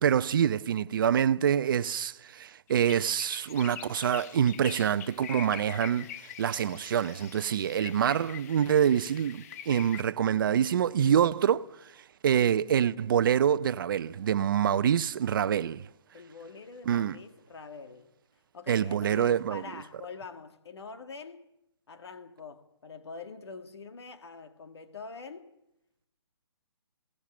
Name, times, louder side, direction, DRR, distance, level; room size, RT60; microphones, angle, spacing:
voice 1, 0.0-6.1 6.4-11.6 12.2-15.9 16.9-17.2 18.7-19.8, right 9 dB, 50° right, 0.7 m, -26 dB
sound 1, 2.7-10.0, left 10 dB, 35° left, 0.8 m, -44 dB
voice 2, 16.1-18.1 18.5-21.4 21.9-25.5, left 4 dB, 70° left, 2.0 m, -44 dB
20.5 x 18.0 x 8.7 m
hypercardioid pair, 145°, 14 cm